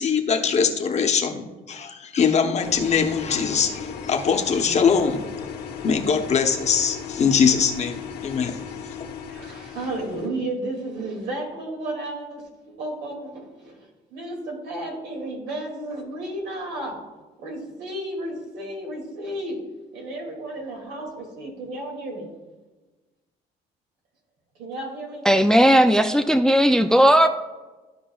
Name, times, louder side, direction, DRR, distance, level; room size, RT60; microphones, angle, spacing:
voice 1, 0.0-5.2 5.8-8.6, left 6 dB, 40° left, 0.9 m, -22 dB
sound 1, 2.6-10.3, left 7 dB, 75° left, 1.2 m, -36 dB
voice 2, 9.3-17.0 17.4-19.6 19.9-22.3 24.6-25.3, right 1 dB, 85° right, 2.4 m, -33 dB
voice 3, 25.3-27.3, equal, 5° left, 0.3 m, -16 dB
14.0 x 4.9 x 2.4 m
cardioid pair, 110°, 17 cm